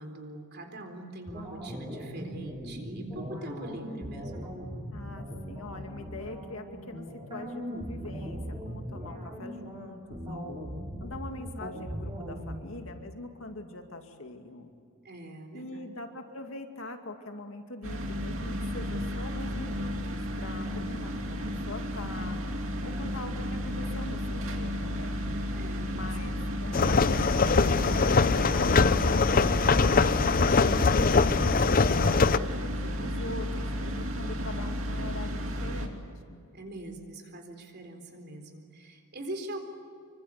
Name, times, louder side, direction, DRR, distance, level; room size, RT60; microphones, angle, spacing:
voice 1, 0.0-4.5 15.0-15.9 20.5-21.0 25.5-26.4 36.5-39.6, right 1 dB, 45° right, 5 dB, 4.0 m, -43 dB
sound 1, 1.3-12.6, equal, 20° right, 5.7 m, -39 dB
voice 2, 4.9-10.6 11.0-14.7 15.5-22.4 22.8-25.2 25.9-29.9 30.4-36.5, left 2 dB, 65° left, 5 dB, 2.4 m, -43 dB
sound 2, 17.8-35.9, equal, 60° right, 2.7 m, -33 dB
sound 3, 26.7-32.4, left 4 dB, 40° left, 0.6 m, -23 dB
26.5 x 24.0 x 8.4 m, 2.3 s
head